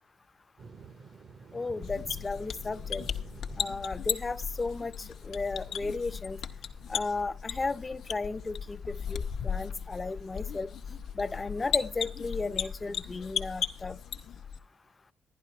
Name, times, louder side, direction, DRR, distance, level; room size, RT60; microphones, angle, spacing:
sound 1, 0.6-13.9, right 5 dB, 50° right, 0.7 m, -54 dB
voice 1, 1.5-3.1 3.6-6.4 6.9-10.7 11.2-14.0, left 3 dB, 25° left, 0.5 m, -34 dB
sound 2, 1.8-14.6, left 7 dB, 70° left, 0.7 m, -36 dB
11.0 x 10.5 x 4.2 m
cardioid pair, 90°, 0 cm